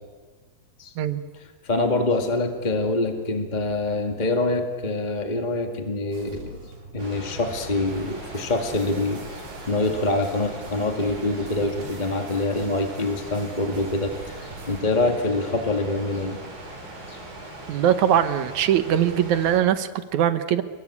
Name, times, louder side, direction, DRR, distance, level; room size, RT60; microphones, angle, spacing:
voice 1, 1.6-6.6 6.9-16.4 17.1-17.2, left 2 dB, 30° left, 5 dB, 0.7 m, -25 dB
sound 1, 6.1-14.8, right 2 dB, 85° right, 5.9 m, -45 dB
sound 2, 7.0-19.6, right 2 dB, 50° right, 8.7 m, -40 dB
voice 2, 17.7-20.6, right 10 dB, 70° right, 11 dB, 1.9 m, -21 dB
29.0 x 22.0 x 8.6 m, 1.4 s
omnidirectional pair, 4.5 m